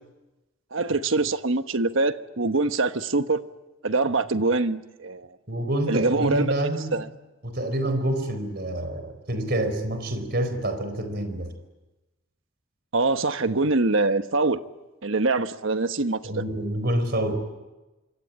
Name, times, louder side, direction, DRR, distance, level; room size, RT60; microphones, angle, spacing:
voice 1, 0.7-3.4 3.8-5.3 5.9-6.5 6.9-7.1 12.9-14.6 15.0-16.4, right 3 dB, 70° right, 10 dB, 1.2 m, -24 dB
voice 2, 5.5-7.0 7.4-11.5 16.2-17.4, right 1 dB, 50° right, 9 dB, 4.4 m, -27 dB
26.5 x 24.5 x 8.8 m, 1.1 s
head